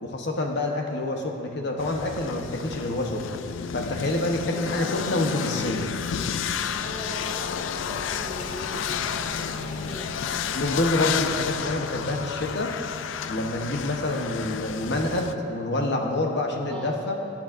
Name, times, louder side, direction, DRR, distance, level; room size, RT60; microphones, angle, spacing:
voice 1, 0.0-3.3 3.7-5.9 10.5-12.7 13.3-17.2, left 1 dB, 65° left, 2 dB, 1.0 m, -27 dB
sound 1, 1.8-15.3, left 7 dB, 80° left, 0.4 m, -31 dB
voice 2, 4.4-5.0 6.8-10.1 16.7-17.1, equal, 5° left, -5 dB, 1.6 m, -41 dB
sound 2, 5.6-11.7, equal, 40° right, 1.7 m, -42 dB
19.5 x 8.9 x 2.6 m, 2.7 s
head